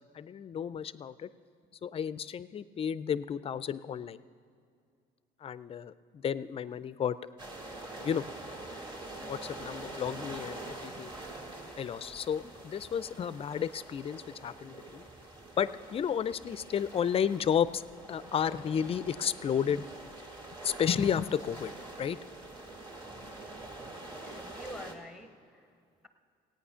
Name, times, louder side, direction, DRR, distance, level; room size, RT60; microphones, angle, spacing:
voice 1, 0.1-1.3 1.8-4.2 5.4-7.2 8.0-8.3 9.2-11.1 11.8-15.0 15.6-17.8 18.1-19.9 20.6-21.7 22.0-22.2, left 8 dB, 35° left, 16 dB, 0.4 m, -32 dB
sound 1, 7.4-24.9, right 2 dB, 30° right, 2.2 m, -45 dB
voice 2, 24.1-26.1, left 1 dB, ahead, 8 dB, 0.9 m, -48 dB
17.0 x 9.0 x 5.6 m, 2.3 s
cardioid pair, 110°, 17 cm